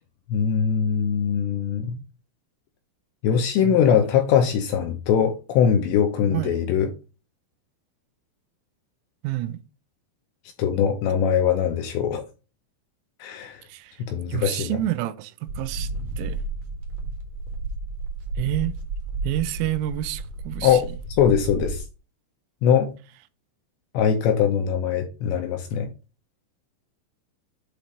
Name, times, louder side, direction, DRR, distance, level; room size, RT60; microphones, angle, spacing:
voice 1, 0.3-2.0 3.2-6.9 10.6-12.2 13.2-13.6 14.0-14.7 20.6-20.9 21.2-21.8 22.6-22.9 23.9-25.9, left 8 dB, 80° left, 2.6 m, -21 dB
voice 2, 9.2-9.6 13.7-14.0 14.3-15.9 16.2-16.4 18.4-18.8 19.2-20.8, right 14 dB, 90° right, 3.3 m, -28 dB
sound 1, 15.5-21.9, right 3 dB, 60° right, 2.3 m, -32 dB
8.4 x 3.0 x 5.2 m
omnidirectional pair, 5.8 m